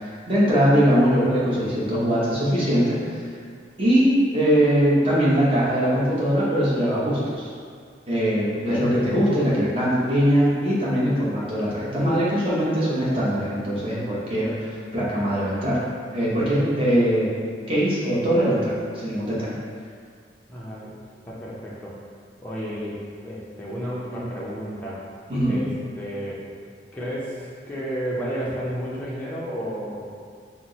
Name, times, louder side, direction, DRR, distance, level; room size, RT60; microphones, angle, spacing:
voice 1, 0.0-3.0 3.8-7.5 8.1-15.8 16.1-17.3 17.7-19.5 25.3-25.6, equal, 30° right, -8 dB, 0.9 m, -21 dB
voice 2, 20.5-20.9 21.3-21.9 22.4-25.0 25.4-25.7 26.0-26.5 26.9-30.1, equal, 10° left, -8 dB, 0.5 m, -32 dB
4.4 x 2.0 x 3.9 m, 2.1 s
head